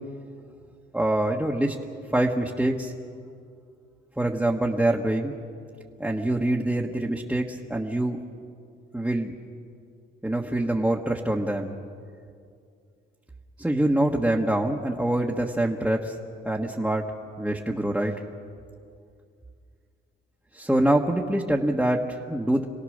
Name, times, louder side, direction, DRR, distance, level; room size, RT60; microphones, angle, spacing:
voice 1, 0.9-1.7 2.1-2.9 4.2-5.3 6.0-8.2 8.9-9.3 10.2-11.7 13.6-16.1 16.4-17.1 17.4-18.2 20.5-22.6, right 1 dB, 5° right, -2 dB, 1.4 m, -25 dB
27.5 x 17.5 x 6.6 m, 2.3 s
cardioid pair, 90°, 20 cm